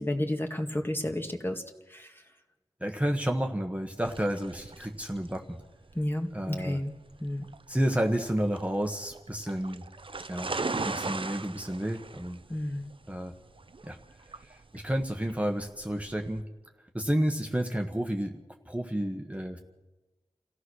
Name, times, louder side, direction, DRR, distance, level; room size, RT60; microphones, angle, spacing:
voice 1, 0.0-1.6 1.9-2.1 6.0-6.9 7.2-7.5 12.5-12.9, left 1 dB, 20° left, 3 dB, 2.0 m, -31 dB
voice 2, 2.8-5.6 6.3-6.8 7.7-9.8 10.3-12.4 13.1-13.3 13.8-14.0 14.5-16.4 16.9-19.6, equal, 10° right, 2 dB, 1.5 m, -31 dB
sound 1, 4.0-16.4, right 3 dB, 45° right, 0.8 m, -39 dB
28.0 x 15.5 x 6.5 m, 1.1 s
wide cardioid pair, 75°, 12 cm